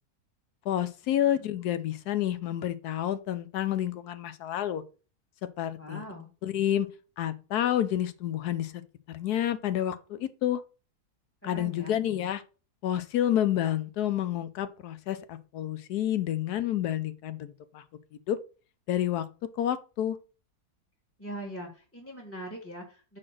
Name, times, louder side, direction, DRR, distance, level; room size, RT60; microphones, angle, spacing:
voice 1, 0.7-4.8 5.6-6.0 6.4-6.9 7.2-8.8 9.1-10.6 11.4-12.4 12.8-17.8 18.3-18.4 18.9-19.3 19.6-20.2, left 11 dB, 80° left, 1.2 m, -29 dB
voice 2, 5.8-6.3 11.4-12.0 21.2-23.2, equal, 10° left, 1.4 m, -42 dB
5.8 x 4.3 x 6.3 m
omnidirectional pair, 1.7 m